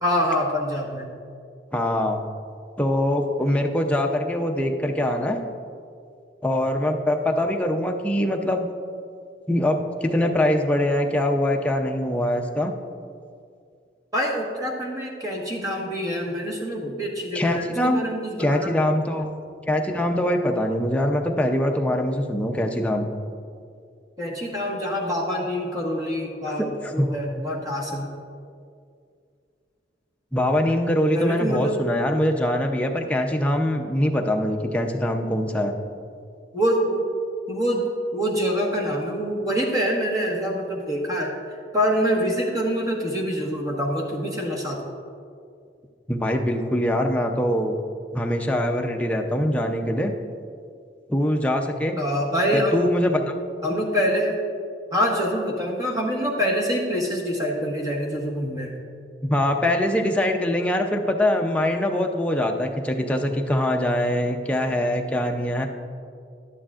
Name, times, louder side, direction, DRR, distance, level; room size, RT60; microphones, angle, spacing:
voice 1, 0.0-1.1 3.4-3.7 14.1-18.7 24.2-28.1 31.1-31.8 36.5-37.0 37.5-37.8 38.1-41.3 41.7-44.8 52.0-52.8 53.6-54.4 54.9-58.7, equal, 20° right, -2 dB, 1.3 m, -25 dB
voice 2, 1.7-2.2 2.8-5.4 6.4-8.7 9.5-12.7 17.3-18.0 18.4-19.3 19.7-23.1 26.5-27.1 30.3-35.8 46.1-47.8 48.1-50.1 51.1-52.0 52.5-53.3 53.6-53.8 59.2-65.7, left 1 dB, 5° left, 2 dB, 0.5 m, -23 dB
11.0 x 10.0 x 2.4 m, 2.2 s
head